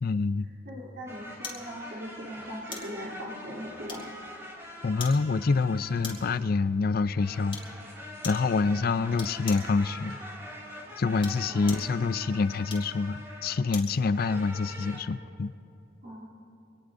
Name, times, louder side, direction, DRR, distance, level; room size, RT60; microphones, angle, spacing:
voice 1, 0.0-0.5 4.8-7.6 8.2-10.2 11.0-15.5, left 4 dB, 50° left, 15 dB, 0.4 m, -26 dB
voice 2, 0.6-4.1 11.5-11.7 16.0-16.3, equal, 65° right, -9 dB, 3.2 m, -40 dB
sound 1, 1.1-6.5 7.1-13.7 14.1-15.0, left 1 dB, 15° right, 2.4 m, -44 dB
sound 2, 1.4-1.7 2.7-3.0 3.9-4.3 5.0-5.2 6.0-6.4 7.5-7.7 8.2-8.5 9.2-9.7 11.1-11.9 12.7-14.0 14.4-14.5, left 4 dB, 30° left, 2.9 m, -40 dB
25.0 x 18.5 x 2.6 m, 2.9 s
head